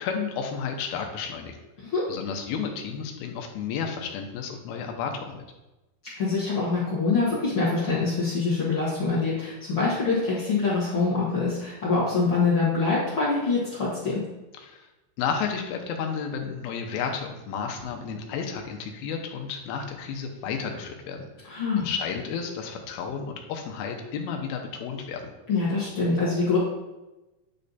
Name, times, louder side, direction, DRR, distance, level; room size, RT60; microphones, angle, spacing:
voice 1, 0.0-1.6 2.1-5.4 14.6-14.9 15.2-25.2, left 6 dB, 80° left, 3 dB, 2.5 m, -32 dB
voice 2, 6.2-14.2 21.5-21.9 25.5-26.6, left 4 dB, 50° left, -8 dB, 1.6 m, -25 dB
9.3 x 3.3 x 4.0 m, 1.0 s
omnidirectional pair, 4.4 m